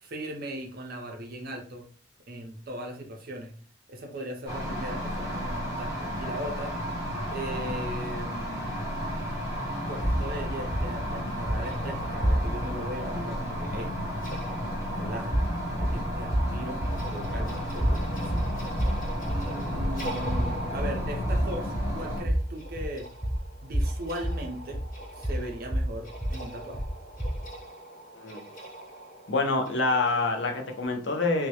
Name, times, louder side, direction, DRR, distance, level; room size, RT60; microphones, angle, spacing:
voice 1, 0.0-1.9 2.3-3.5 3.9-6.8 7.3-9.1 9.9-13.9 15.0-15.4 15.7-18.6 19.3-23.1 23.6-24.8 25.1-26.8, equal, 55° right, 3 dB, 0.5 m, -38 dB
sound 1, 4.5-22.2, equal, 15° right, 0.7 m, -33 dB
sound 2, 10.0-12.8 15.2-27.6, equal, 15° left, 1.2 m, -30 dB
sound 3, 11.6-30.9, right 1 dB, 45° left, 0.9 m, -44 dB
voice 2, 29.3-31.5, left 3 dB, 70° left, 4 dB, 0.5 m, -26 dB
2.2 x 2.0 x 2.8 m, 0.43 s
head